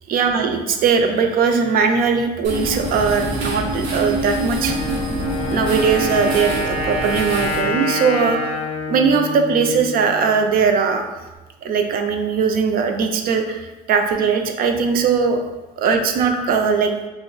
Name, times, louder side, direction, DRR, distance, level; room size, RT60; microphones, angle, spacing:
voice 1, 0.1-4.8 5.5-8.4 8.9-11.1 11.6-15.4 15.8-16.9, right 5 dB, 60° right, 5 dB, 0.4 m, -19 dB
sound 1, 2.4-7.6, right 1 dB, 85° right, 0.8 m, -25 dB
Wind instrument woodwind instrument, 4.6-10.4, left 1 dB, 35° left, 0.5 m, -26 dB
2.8 x 2.1 x 3.8 m, 1.2 s
cardioid pair, 110°, 17 cm